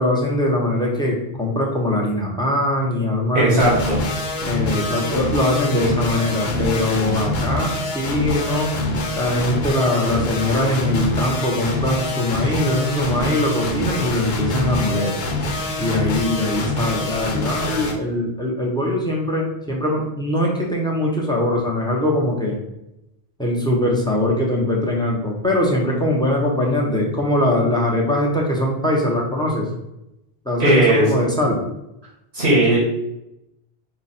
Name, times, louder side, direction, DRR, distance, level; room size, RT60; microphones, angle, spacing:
voice 1, 0.0-3.6 4.5-8.7 9.2-15.1 15.8-22.6 23.4-29.7 30.4-31.6, left 1 dB, 5° left, -2 dB, 0.8 m, -21 dB
voice 2, 3.3-4.0 30.6-31.1 32.3-32.8, right 1 dB, 85° right, -6 dB, 1.7 m, -16 dB
sound 1, 3.6-17.9, left 1 dB, 80° left, 1.0 m, -25 dB
4.8 x 2.3 x 4.2 m, 0.88 s
omnidirectional pair, 1.0 m